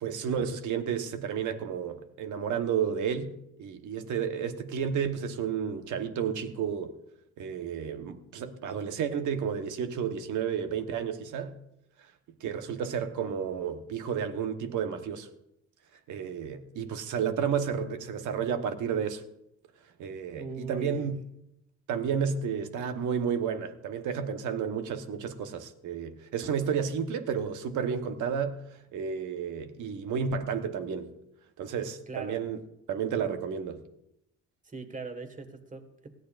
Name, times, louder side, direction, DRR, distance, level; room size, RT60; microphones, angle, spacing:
voice 1, 0.0-6.9 7.4-11.5 12.4-15.3 16.1-19.2 20.0-21.2 21.9-31.2 31.6-32.6 32.9-33.8, right 7 dB, 80° right, 1.2 m, -31 dB
voice 2, 20.3-21.1 32.1-32.4 34.6-36.1, right 4 dB, 25° right, 1.7 m, -41 dB
19.5 x 14.5 x 2.5 m
cardioid pair, 90°, 30 cm